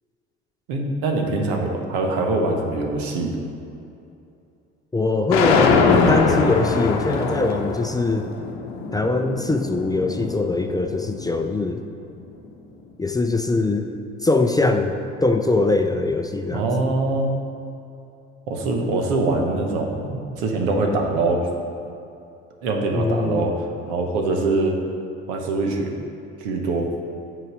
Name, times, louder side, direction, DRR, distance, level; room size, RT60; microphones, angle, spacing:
voice 1, 0.7-3.3 16.5-17.3 18.5-21.4 22.6-23.5 23.9-24.8 25.3-25.9 26.4-26.9, right 2 dB, 75° right, 2 dB, 1.0 m, -23 dB
voice 2, 4.9-8.3 8.9-11.8 13.0-13.9 14.2-17.0 22.9-23.5, left 3 dB, 10° left, 5 dB, 0.4 m, -22 dB
sound 1, 5.3-11.5, left 5 dB, 75° left, 0.8 m, -22 dB
7.7 x 3.9 x 6.1 m, 2.6 s
hypercardioid pair, 60°, 33 cm